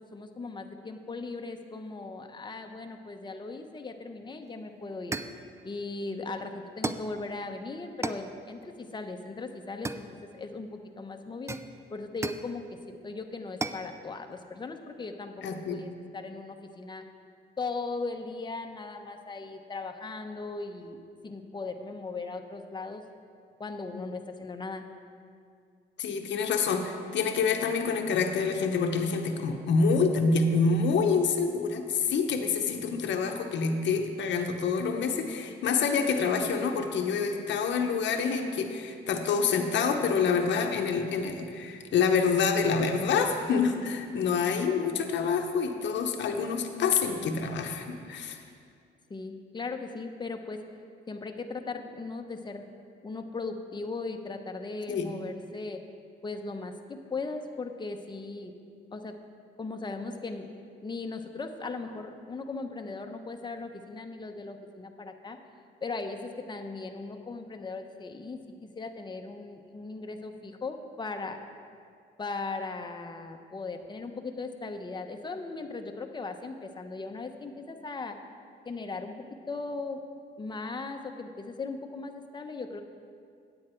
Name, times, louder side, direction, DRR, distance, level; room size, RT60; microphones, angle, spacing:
voice 1, 0.1-5.2 5.6-11.6 11.9-17.0 17.6-21.0 21.2-23.0 23.6-24.8 49.1-50.6 51.1-52.7 53.0-55.8 56.2-58.5 58.9-59.2 59.6-60.5 60.8-65.4 65.8-71.4 72.2-78.2 78.6-79.2 79.5-80.0 80.4-82.8, left 3 dB, 20° left, 5 dB, 0.8 m, -38 dB
sound 1, 4.4-4.6 5.1-5.5 6.8-7.2 8.0-8.3 9.8-10.5 11.5-12.5 13.6-13.9, right 3 dB, 15° right, 0.4 m, -35 dB
voice 2, 15.4-15.8 23.9-24.1 26.0-48.4 54.9-55.1, left 5 dB, 65° left, 4 dB, 0.9 m, -27 dB
9.6 x 8.7 x 4.5 m, 2.3 s
cardioid pair, 90°, 20 cm